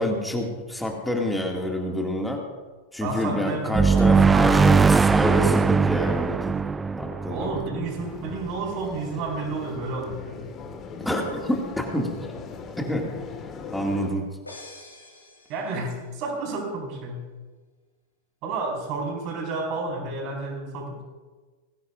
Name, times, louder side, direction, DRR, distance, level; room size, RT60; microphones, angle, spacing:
voice 1, 0.0-2.4 2.9-6.5 7.0-7.6 11.0-12.1 12.8-13.1 13.7-14.3, left 1 dB, 5° left, 1 dB, 2.2 m, -28 dB
voice 2, 3.0-4.7 7.3-10.5 15.5-17.2 18.4-21.0, right 3 dB, 40° right, 0 dB, 4.8 m, -31 dB
sound 1, 3.7-8.3, right 5 dB, 15° right, 0.3 m, -20 dB
sound 2, 8.0-14.1, left 5 dB, 30° left, 1.7 m, -39 dB
sound 3, 14.5-16.3, left 2 dB, 80° left, 4.3 m, -46 dB
21.5 x 16.5 x 2.5 m, 1.3 s
figure-of-eight pair, 90°, 0 cm